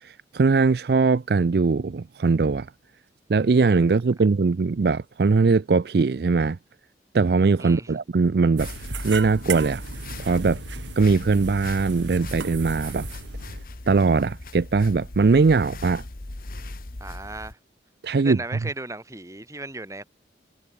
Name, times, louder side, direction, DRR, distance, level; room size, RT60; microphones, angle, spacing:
voice 1, 0.0-2.7 3.3-6.6 7.1-8.7 9.0-9.8 10.2-10.6 11.0-13.1 13.9-16.0 18.0-18.4, right 4 dB, 60° right, 0.4 m, -21 dB
voice 2, 7.6-8.0 17.0-17.6 18.2-20.0, right 2 dB, 15° right, 1.7 m, -36 dB
sound 1, 8.6-17.5, left 2 dB, 50° left, 1.3 m, -39 dB
sound 2, 8.6-13.7, right 4 dB, 85° right, 3.1 m, -35 dB
head